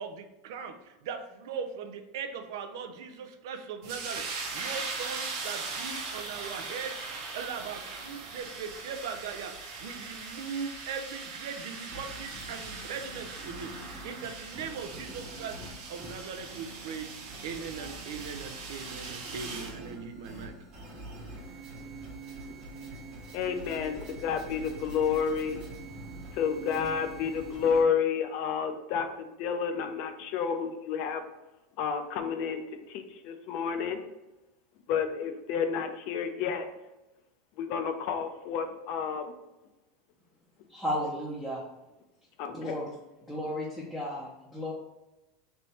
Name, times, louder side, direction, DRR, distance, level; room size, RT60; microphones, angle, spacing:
voice 1, 0.0-15.6 15.9-17.1 17.4-20.5, right 6 dB, 75° right, 6 dB, 0.5 m, -40 dB
sound 1, 3.8-19.8, right 4 dB, 60° right, 0.9 m, -40 dB
sound 2, 11.9-27.8, right 2 dB, 35° right, 1.1 m, -45 dB
voice 2, 23.3-25.6 26.3-31.2 31.8-32.6 32.9-34.0 34.9-36.7 37.6-39.2 42.4-42.8, left 6 dB, 50° left, 7 dB, 0.5 m, -30 dB
voice 3, 40.7-41.6 42.5-42.9 43.3-44.7, left 1 dB, ahead, -8 dB, 0.7 m, -34 dB
3.4 x 2.9 x 4.2 m, 1.0 s
supercardioid pair, 145°, 2 cm